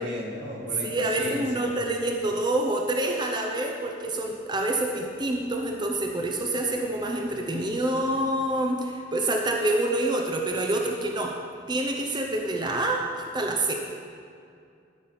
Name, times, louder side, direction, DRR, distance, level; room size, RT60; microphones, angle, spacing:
voice 1, 0.0-1.8, left 1 dB, 85° right, -1 dB, 2.1 m, -35 dB
voice 2, 0.8-11.4 11.7-13.7, right 1 dB, 25° right, 2 dB, 0.7 m, -27 dB
13.0 x 6.1 x 5.7 m, 2.4 s
head